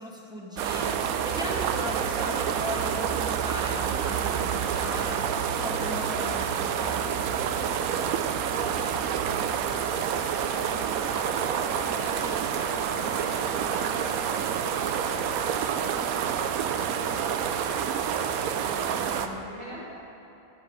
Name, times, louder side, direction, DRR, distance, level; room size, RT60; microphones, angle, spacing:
voice 1, 0.0-7.0 12.2-12.4 18.9-19.5, equal, 5° right, -2 dB, 0.9 m, -38 dB
sound 1, 0.6-19.3, right 8 dB, 75° right, 1.0 m, -28 dB
voice 2, 6.9-17.7 18.6-19.8, right 1 dB, 40° right, -8 dB, 2.7 m, -44 dB
9.9 x 5.4 x 7.8 m, 3.0 s
omnidirectional pair, 1.6 m